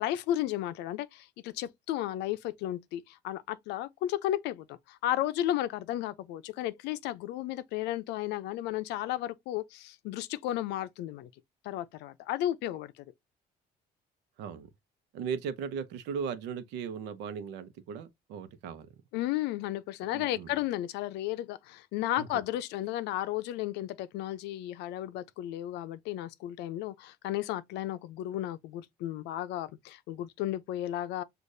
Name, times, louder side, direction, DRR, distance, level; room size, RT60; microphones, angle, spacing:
voice 1, 0.0-11.3 11.6-12.9 19.1-31.2, left 13 dB, 90° left, 0.5 m, -33 dB
voice 2, 15.1-18.9 20.1-20.5 22.2-22.3, right 6 dB, 90° right, 0.8 m, -37 dB
6.4 x 2.5 x 2.6 m
cardioid pair, 110°, 17 cm